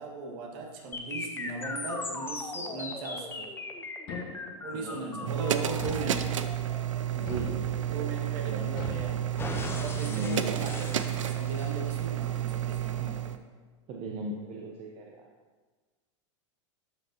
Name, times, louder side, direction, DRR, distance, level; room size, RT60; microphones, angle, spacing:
voice 1, 0.0-3.5 4.6-6.4 7.8-9.3 9.8-13.3, right 3 dB, 55° right, 1 dB, 1.8 m, -38 dB
sound 1, 0.9-8.9 9.4-11.9, left 3 dB, 15° left, 0.8 m, -39 dB
sound 2, 4.1-4.8 5.8-6.6 7.3-8.1 8.8-9.8, left 2 dB, 50° left, 1.6 m, -41 dB
voice 2, 4.7-5.4 7.1-8.8 10.0-10.5 13.0-13.3 13.9-15.2, right 2 dB, 40° right, 0 dB, 0.8 m, -39 dB
sound 3, 5.3-13.4, right 11 dB, 80° right, 0.5 m, -31 dB
12.0 x 5.2 x 2.9 m, 1.4 s
hypercardioid pair, 105°, 16 cm